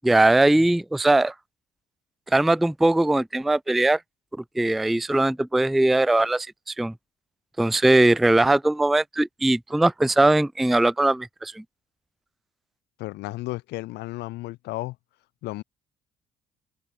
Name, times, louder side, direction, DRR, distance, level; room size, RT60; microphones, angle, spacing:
voice 1, 0.0-1.3 2.3-4.0 4.6-6.5 6.8-6.9 7.6-11.6, right 2 dB, ahead, 0.3 m, -20 dB
voice 2, 13.0-15.0 15.4-15.6, left 19 dB, 85° left, 2.2 m, -33 dB
cardioid pair, 110°, 17 cm